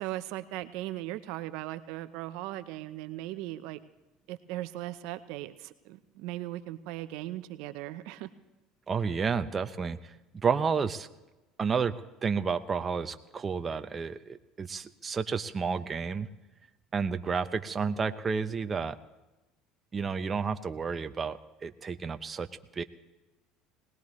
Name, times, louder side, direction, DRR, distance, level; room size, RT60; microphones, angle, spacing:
voice 1, 0.0-3.8 4.3-8.3, right 15 dB, 75° right, 11 dB, 0.8 m, -38 dB
voice 2, 8.9-10.2 10.4-11.1 11.6-11.9 12.2-16.3 16.9-19.0 19.9-22.5 22.7-22.8, right 5 dB, 30° right, 9 dB, 0.8 m, -31 dB
21.5 x 18.5 x 3.2 m, 1.1 s
supercardioid pair, 100°, 0 cm